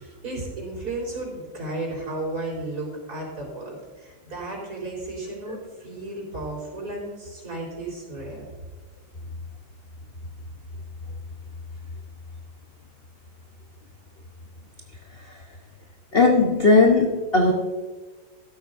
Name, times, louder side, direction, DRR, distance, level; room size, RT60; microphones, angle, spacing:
voice 1, 0.0-8.5, right 2 dB, 45° right, -3 dB, 4.8 m, -34 dB
voice 2, 16.1-17.5, left 3 dB, 40° left, 2 dB, 0.8 m, -17 dB
14.5 x 12.5 x 2.6 m, 1.4 s
omnidirectional pair, 2.4 m